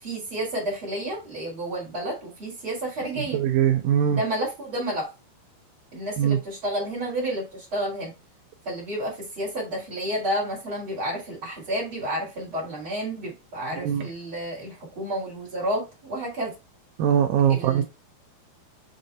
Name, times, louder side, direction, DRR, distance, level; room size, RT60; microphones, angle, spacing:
voice 1, 0.0-3.4 4.1-5.1 5.9-8.1 8.6-16.5 17.5-17.8, right 1 dB, 35° right, 3.1 m, -30 dB
voice 2, 3.3-4.2 6.2-6.4 13.8-14.1 17.0-17.8, right 9 dB, 85° right, 2.0 m, -21 dB
6.4 x 3.8 x 4.2 m
omnidirectional pair, 4.8 m